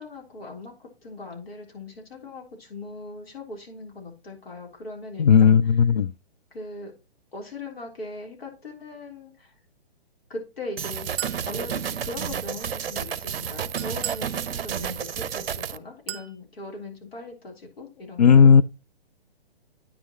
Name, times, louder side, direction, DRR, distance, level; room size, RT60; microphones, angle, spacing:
voice 1, 0.0-5.7 6.5-6.9 7.3-9.5 10.3-18.6, left 2 dB, 70° left, 3.7 m, -40 dB
voice 2, 5.2-6.1 18.2-18.6, left 6 dB, 40° left, 0.4 m, -14 dB
sound 1, 10.8-15.8, right 8 dB, 65° right, 0.6 m, -31 dB
Chink clink, 11.2-11.5 13.8-14.3 16.1-16.3, right 10 dB, 35° right, 1.0 m, -34 dB
9.4 x 6.3 x 3.0 m
figure-of-eight pair, 130°, 31 cm